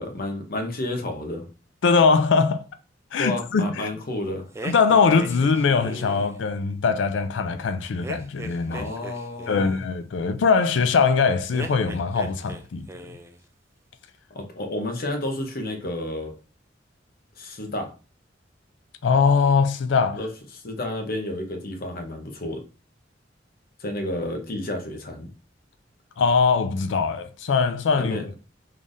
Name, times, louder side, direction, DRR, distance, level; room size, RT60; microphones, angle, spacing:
voice 1, 0.0-1.5 3.2-4.5 8.7-9.8 14.3-16.3 17.4-17.9 20.1-22.6 23.8-25.3 27.9-28.2, left 1 dB, 50° left, 0.8 m, -31 dB
voice 2, 1.8-2.7 3.1-3.9 4.6-8.9 9.5-12.9 19.0-20.2 26.2-28.2, left 5 dB, 70° left, 0.4 m, -21 dB
sound 1, 4.5-6.4 8.0-9.9 11.5-12.6 12.9-13.4, right 2 dB, 15° right, 0.3 m, -38 dB
3.8 x 3.3 x 2.6 m
head